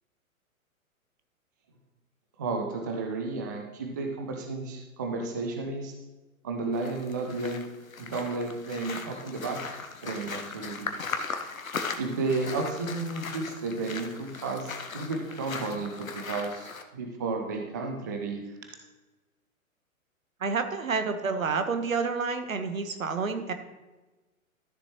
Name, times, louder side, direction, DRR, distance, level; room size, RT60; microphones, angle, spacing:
voice 1, 2.4-5.9 6.4-7.6 8.0-9.6 10.0-10.9 12.0-18.4, right 3 dB, 15° right, 3 dB, 0.4 m, -32 dB
sound 1, 6.7-16.8, left 4 dB, 70° left, 1.0 m, -38 dB
voice 2, 20.4-23.5, right 5 dB, 70° right, 8 dB, 1.3 m, -29 dB
13.0 x 6.9 x 3.0 m, 1.1 s
figure-of-eight pair, 115°, 42 cm